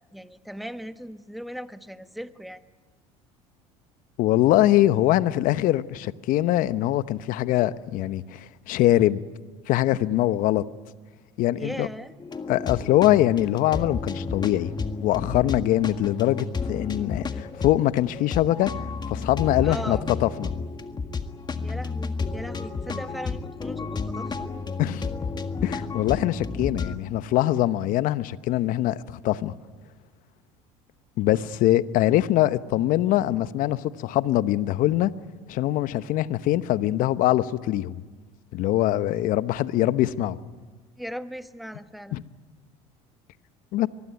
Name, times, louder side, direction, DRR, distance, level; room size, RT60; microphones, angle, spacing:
voice 1, 0.1-2.6 11.5-12.1 19.6-20.0 21.6-24.5 41.0-42.2, equal, ahead, 1.3 m, -38 dB
voice 2, 4.2-9.2 9.7-10.6 11.4-11.9 12.5-14.7 15.0-18.7 19.1-20.5 24.8-25.1 25.6-29.5 31.2-35.1 35.5-38.0 38.5-40.4 42.1-42.2 43.7-43.9, left 14 dB, 60° left, 0.9 m, -23 dB
sound 1, 12.2-27.0, left 4 dB, 30° left, 1.7 m, -32 dB
24.0 x 20.5 x 9.6 m
hypercardioid pair, 80°, 16 cm